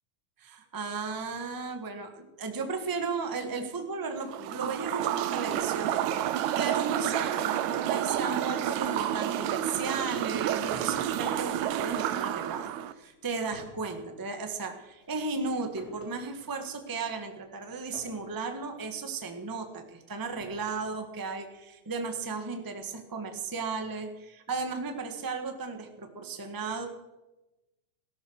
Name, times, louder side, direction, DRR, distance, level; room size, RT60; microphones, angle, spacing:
voice 1, 0.4-6.0 6.6-26.9, right 4 dB, 20° right, 5 dB, 0.6 m, -35 dB
sound 1, 4.3-12.9, right 11 dB, 75° right, 2.0 m, -30 dB
sound 2, 9.6-12.2 12.7-12.8 13.1-16.7 17.9-18.7 19.6-19.7 20.4-20.9, left 2 dB, 30° left, 3.2 m, -51 dB
18.0 x 12.0 x 6.4 m, 1.0 s
omnidirectional pair, 3.7 m